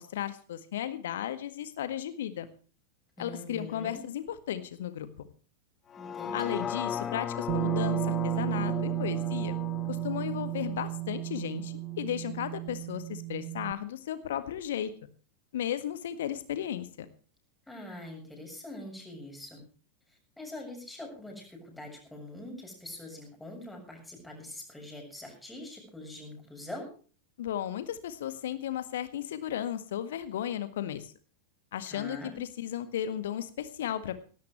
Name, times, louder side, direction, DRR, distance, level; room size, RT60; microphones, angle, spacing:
voice 1, 0.0-2.5 3.2-5.3 6.3-9.5 9.9-14.9 15.5-17.1 27.4-31.1 31.7-34.2, left 10 dB, 60° left, 11 dB, 1.7 m, -35 dB
voice 2, 3.2-4.0 6.0-6.7 17.7-19.6 20.4-26.9 31.9-32.4, left 1 dB, 5° left, 1 dB, 7.0 m, -43 dB
sound 1, 5.9-12.0 12.5-12.6, left 8 dB, 25° left, 1.1 m, -37 dB
Bass guitar, 7.5-13.7, right 23 dB, 40° right, 1.0 m, -33 dB
18.0 x 16.0 x 3.2 m, 0.38 s
figure-of-eight pair, 90°, 0 cm